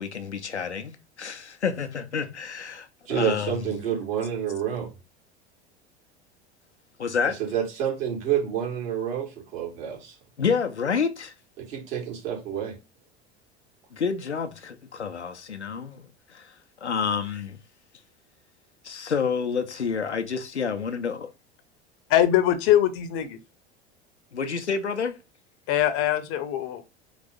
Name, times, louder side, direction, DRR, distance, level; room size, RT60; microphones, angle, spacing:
voice 1, 0.0-3.5 7.0-7.4 10.4-11.3 13.9-16.5 16.8-17.6 18.8-21.3 24.3-25.2, left 6 dB, 85° left, 0.6 m, -29 dB
voice 2, 3.1-4.9 7.4-10.1 11.6-12.7, right 9 dB, 60° right, 2.3 m, -28 dB
voice 3, 22.1-23.4 25.7-26.8, left 12 dB, 40° left, 0.8 m, -22 dB
4.0 x 3.3 x 3.6 m
figure-of-eight pair, 75°, 33 cm